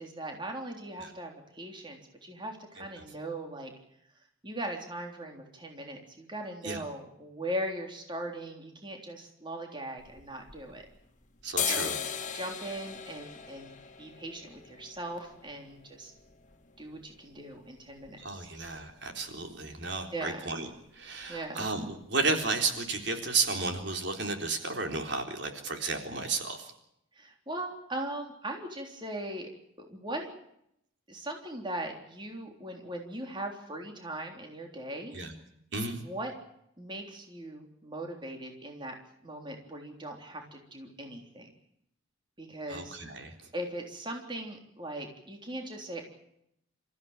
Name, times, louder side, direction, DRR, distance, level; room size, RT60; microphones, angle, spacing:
voice 1, 0.0-3.7 4.4-10.9 11.7-16.1 16.8-18.5 20.1-20.5 21.3-21.7 27.1-29.5 29.8-30.3 31.1-35.2 36.0-36.3 36.8-39.0 39.2-41.5 42.4-43.0 43.5-46.0, right 1 dB, 25° right, 2 dB, 3.6 m, -39 dB
sound 1, 10.0-11.0 11.4-19.1 19.4-19.5 19.8-20.3 20.6-20.9 21.1-21.4 21.6-22.4 22.7-22.9 23.4-23.5 23.7-23.8, left 8 dB, 40° left, 2.4 m, -39 dB
voice 2, 11.4-12.0 18.2-20.7 20.9-26.7 35.1-35.4 35.7-36.0 42.7-43.5, right 3 dB, 60° right, 4 dB, 3.8 m, -33 dB
27.5 x 15.5 x 9.0 m, 0.77 s
head